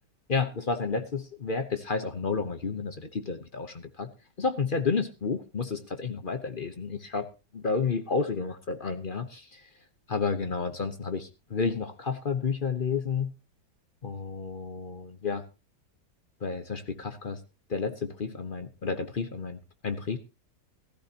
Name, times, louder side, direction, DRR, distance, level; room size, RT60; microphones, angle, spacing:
voice 1, 0.3-4.1 4.4-7.3 7.5-9.6 10.1-13.3 14.0-15.4 16.4-17.4 17.7-19.6 19.8-20.2, left 4 dB, 40° left, 9 dB, 0.9 m, -31 dB
16.0 x 14.0 x 2.9 m, 0.30 s
omnidirectional pair, 1.8 m